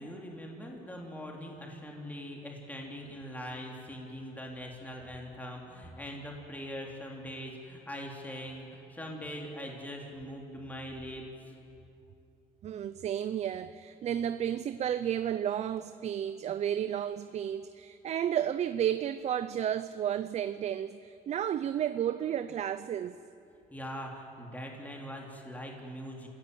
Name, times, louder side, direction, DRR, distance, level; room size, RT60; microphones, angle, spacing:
voice 1, 0.0-11.5 23.7-26.3, equal, 10° left, 3.1 m, -42 dB
voice 2, 12.6-23.2, right 10 dB, 45° right, 0.6 m, -32 dB
27.5 x 16.5 x 7.9 m
cardioid pair, 120°, 16 cm